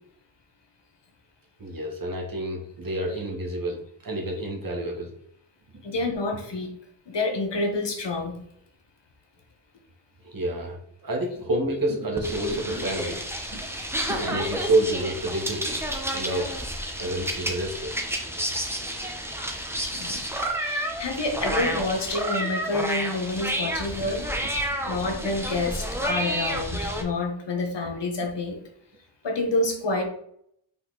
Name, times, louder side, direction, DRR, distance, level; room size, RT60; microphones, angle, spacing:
voice 1, 1.6-5.1 10.2-13.2 13.5-13.6 14.1-15.8 16.1-16.5 17.0-17.9 24.7-25.1 26.0-26.1, right 1 dB, 45° right, 0 dB, 1.5 m, -29 dB
voice 2, 5.8-6.7 7.1-8.4 12.4-12.5 14.4-14.5 16.4-16.5 19.8-20.2 20.5-24.3 24.9-28.6 29.2-30.0, left 2 dB, 60° left, 3 dB, 1.4 m, -28 dB
sound 1, 12.2-27.0, right 1 dB, 5° right, 0.9 m, -30 dB
5.4 x 4.4 x 4.0 m, 0.69 s
wide cardioid pair, 120°, 48 cm